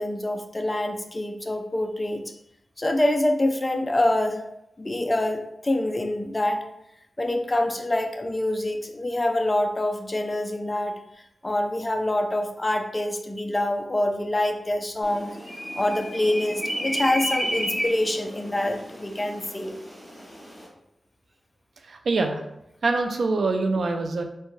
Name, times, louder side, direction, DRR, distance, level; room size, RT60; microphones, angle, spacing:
voice 1, 0.0-2.2 2.8-4.4 4.8-6.6 7.2-10.9 11.4-15.3 15.8-19.8, left 1 dB, 25° left, 4 dB, 0.4 m, -25 dB
sound 1, 15.0-20.7, equal, 10° left, 1.4 m, -32 dB
voice 2, 21.8-22.4 22.8-24.2, right 3 dB, 75° right, 4 dB, 0.4 m, -24 dB
3.7 x 2.1 x 3.0 m, 0.81 s
wide cardioid pair, 90°, 0 cm